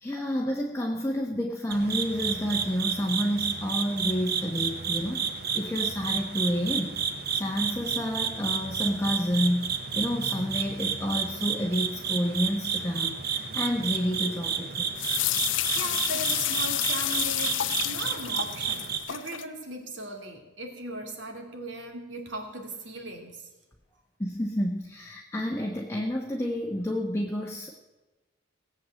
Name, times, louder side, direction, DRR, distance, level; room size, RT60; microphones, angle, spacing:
voice 1, 0.0-7.0 7.3-14.9 24.2-27.7, equal, 15° left, 0 dB, 1.0 m, -29 dB
sound 1, 1.7-19.0, right 7 dB, 50° right, 1.2 m, -31 dB
sound 2, 15.0-19.4, left 14 dB, 70° left, 0.6 m, -30 dB
voice 2, 15.3-23.5, right 2 dB, 70° right, 3 dB, 2.6 m, -38 dB
17.5 x 7.9 x 7.5 m, 1.1 s
head